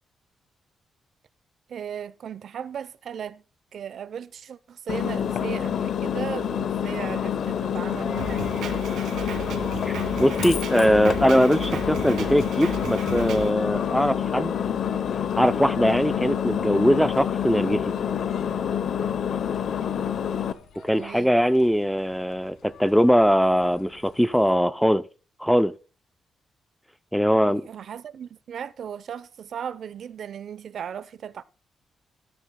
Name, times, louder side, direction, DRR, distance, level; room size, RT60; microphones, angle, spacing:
voice 1, 1.7-3.4 3.7-8.7 20.9-21.3 27.4-31.4, right 8 dB, 55° right, 0.7 m, -36 dB
Engine, 4.9-20.5, left 8 dB, 60° left, 0.8 m, -27 dB
Coin (dropping), 7.9-24.6, left 6 dB, 80° left, 2.2 m, -44 dB
Drum kit, 8.2-13.5, right 6 dB, 85° right, 2.3 m, -35 dB
voice 2, 9.8-14.5 15.4-17.9 20.8-25.0 25.4-25.7 27.1-27.6, equal, ahead, 0.5 m, -21 dB
13.0 x 13.0 x 2.2 m
wide cardioid pair, 150°, 0 cm